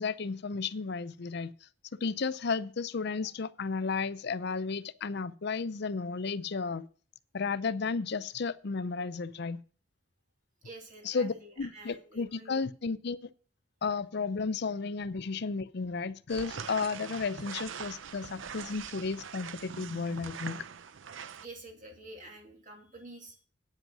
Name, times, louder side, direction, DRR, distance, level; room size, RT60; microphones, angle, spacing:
voice 1, 0.0-1.5 2.0-6.9 7.3-9.6 11.0-13.3 13.8-20.6, left 4 dB, 55° left, 0.6 m, -33 dB
voice 2, 10.6-12.6 21.4-23.4, right 2 dB, 40° right, 2.7 m, -49 dB
sound 1, 16.3-21.5, right 7 dB, 75° right, 0.6 m, -43 dB
9.5 x 8.0 x 6.0 m
head